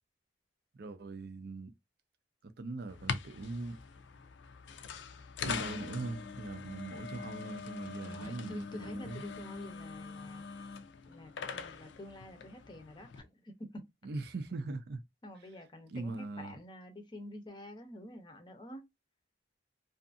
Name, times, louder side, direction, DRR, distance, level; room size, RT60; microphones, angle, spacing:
voice 1, 0.7-1.7 2.4-3.8 5.4-9.2 14.0-15.0 15.9-16.6, right 3 dB, 60° right, 0.5 m, -41 dB
sound 1, 2.9-13.2, left 5 dB, 70° left, 0.4 m, -43 dB
voice 2, 8.1-10.7 11.0-13.8 15.2-18.8, left 1 dB, 25° left, 0.6 m, -48 dB
2.6 x 2.5 x 2.4 m
head